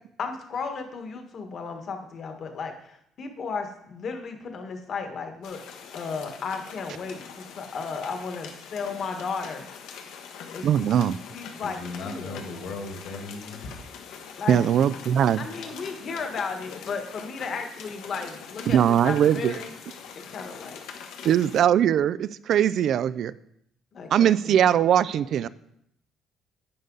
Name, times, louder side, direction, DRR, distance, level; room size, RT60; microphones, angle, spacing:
voice 1, 0.2-5.6 5.9-9.7 10.5-10.9 11.3-11.8 12.0-12.4 14.4-14.6 15.4-19.8 20.1-20.8 23.9-24.5 25.1-25.5, left 5 dB, 35° left, 5 dB, 1.4 m, -34 dB
sound 1, 5.4-21.6, left 6 dB, 75° left, 1.3 m, -43 dB
voice 2, 10.6-11.2 14.5-15.4 18.7-19.6 21.2-23.3 24.1-25.5, right 9 dB, 50° right, 16 dB, 0.3 m, -21 dB
voice 3, 11.6-13.7, left 3 dB, 50° left, 4 dB, 2.1 m, -37 dB
11.0 x 9.6 x 3.9 m, 0.72 s
cardioid pair, 180°, 0 cm